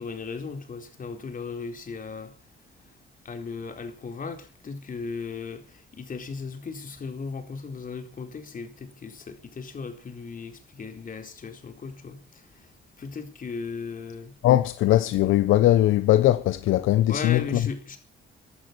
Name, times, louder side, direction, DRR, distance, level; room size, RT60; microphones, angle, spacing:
voice 1, 0.0-2.3 3.2-12.7 13.0-14.3 17.1-18.0, left 5 dB, 45° left, 4.2 m, -36 dB
voice 2, 14.4-17.6, left 14 dB, 85° left, 1.0 m, -20 dB
16.0 x 11.5 x 6.9 m
cardioid pair, 90°, 20 cm